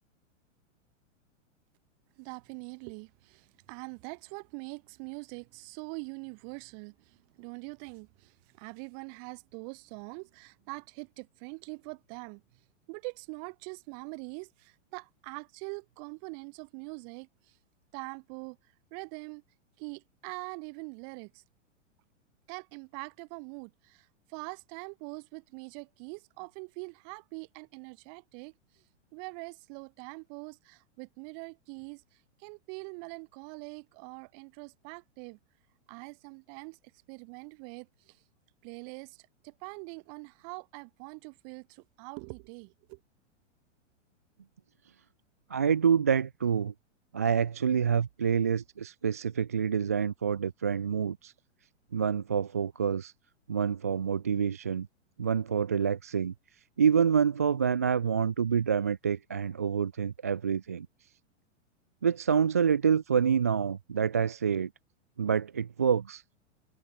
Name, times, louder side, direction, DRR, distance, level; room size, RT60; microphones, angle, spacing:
voice 1, 2.2-12.4 12.9-17.6 17.9-18.6 18.9-19.4 19.8-21.4 22.5-28.8 29.1-32.0 32.4-35.4 35.9-36.8 37.1-38.2 38.6-43.0, right 40 dB or more, 30° right, 6.8 m, -43 dB
voice 2, 45.5-46.7 47.1-51.3 51.9-53.1 53.5-54.9 55.2-56.3 56.8-60.9 62.0-64.7 65.2-66.2, right 7 dB, 15° right, 0.4 m, -27 dB
supercardioid pair, 175°, 37 cm